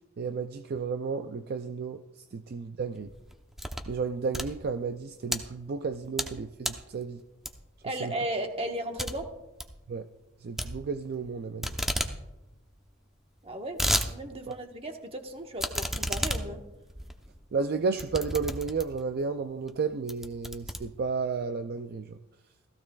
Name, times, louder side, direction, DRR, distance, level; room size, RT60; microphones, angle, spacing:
voice 1, 0.2-3.1 3.9-7.2 7.8-8.1 9.9-10.1 10.4-11.7 14.5-14.6 17.5-22.2, right 5 dB, 50° right, 9 dB, 0.4 m, -32 dB
sound 1, 3.0-3.9 4.2-5.4 5.9-6.3 6.6-6.9 7.4-7.8 8.2-8.3 8.6-8.7 9.0-9.1 9.4-9.7 10.6-11.3 11.6-12.1 12.5-12.6 12.7-12.8 13.4-14.1 14.5-14.6 15.6-19.1 19.6-19.8 20.1-21.3, equal, ahead, 0.8 m, -32 dB
voice 2, 7.8-9.3 13.4-13.8 14.1-16.6, right 1 dB, 30° right, 4 dB, 1.3 m, -35 dB
16.5 x 14.5 x 2.4 m, 0.99 s
head